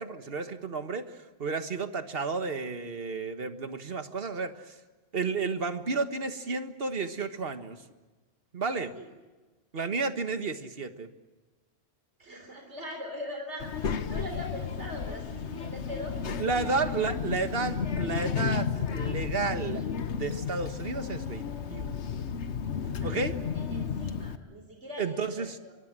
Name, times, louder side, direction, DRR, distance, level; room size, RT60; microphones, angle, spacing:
voice 1, 0.0-4.8 5.1-7.8 8.5-8.9 9.7-11.1 16.4-22.0 23.0-23.3 25.0-25.6, right 4 dB, 60° right, 8 dB, 1.7 m, -32 dB
voice 2, 12.2-16.5 23.0-23.2 23.5-25.7, equal, 85° right, 3 dB, 3.9 m, -41 dB
Child speech kid speaking, 13.6-24.4, left 6 dB, 85° left, 1.4 m, -33 dB
24.0 x 23.0 x 7.6 m, 1.2 s
omnidirectional pair, 1.1 m